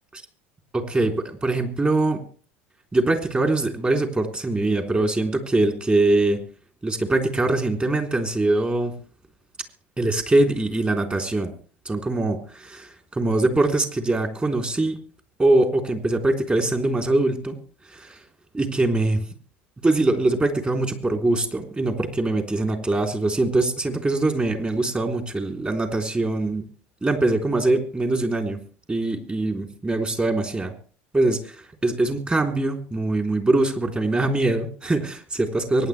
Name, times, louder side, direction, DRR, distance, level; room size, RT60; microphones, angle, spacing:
voice 1, 0.7-2.2 2.9-6.4 6.8-8.9 10.0-11.5 11.8-15.0 15.4-17.6 17.9-18.2 18.5-19.2 19.8-26.6 27.0-28.6 28.9-30.7 31.1-35.9, right 2 dB, 20° right, 4 dB, 3.5 m, -23 dB
24.0 x 10.5 x 3.4 m, 0.42 s
hypercardioid pair, 75°, 6 cm